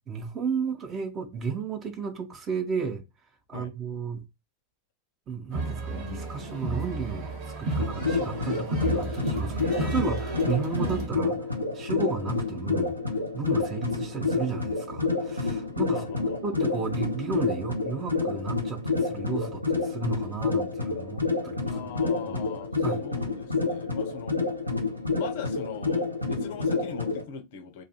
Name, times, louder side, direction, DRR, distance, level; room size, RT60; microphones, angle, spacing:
voice 1, 0.1-3.0 3.5-4.2 5.3-11.4 11.7-13.0 13.3-16.0 16.4-21.9 22.3-22.5 22.8-23.0, right 5 dB, 25° right, 0.6 m, -33 dB
sound 1, 5.5-11.1, right 2 dB, 45° right, 1.0 m, -32 dB
sound 2, 7.8-27.2, left 3 dB, 90° right, 0.7 m, -29 dB
voice 2, 15.9-16.4 21.6-24.4 25.1-27.8, left 7 dB, 50° left, 0.5 m, -41 dB
2.6 x 2.4 x 2.8 m
figure-of-eight pair, 90°, 0 cm